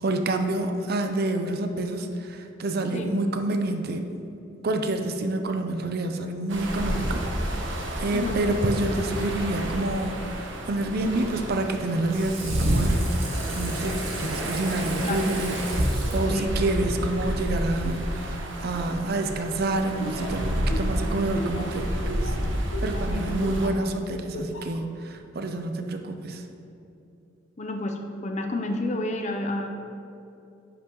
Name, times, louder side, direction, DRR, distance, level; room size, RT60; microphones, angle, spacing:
voice 1, 0.0-4.1 4.6-13.1 13.5-22.3 22.8-26.4, right 2 dB, 50° right, 6 dB, 0.5 m, -28 dB
sound 1, 6.5-23.7, equal, 70° right, 1.0 m, -29 dB
Water / Sink (filling or washing), 11.4-16.9, right 3 dB, 90° right, 1.6 m, -39 dB
Laughter, 20.0-23.9 24.3-24.8, left 1 dB, 70° left, 0.8 m, -36 dB
voice 2, 27.6-29.7, left 2 dB, 35° left, 4 dB, 0.6 m, -30 dB
10.0 x 5.8 x 3.0 m, 2.8 s
head